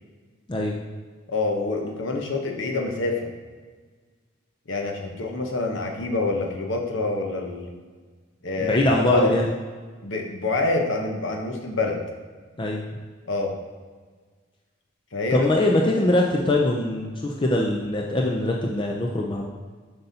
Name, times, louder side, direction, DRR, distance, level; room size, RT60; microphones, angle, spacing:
voice 1, 1.3-3.3 4.7-7.7 8.4-9.3 10.0-12.0 13.3-13.5 15.1-15.5 15.8-16.0, left 2 dB, 60° left, 2 dB, 0.9 m, -26 dB
voice 2, 8.6-9.5 12.6-12.8 15.3-19.5, left 1 dB, 25° left, -1 dB, 0.4 m, -22 dB
7.7 x 5.4 x 2.8 m, 1.5 s
head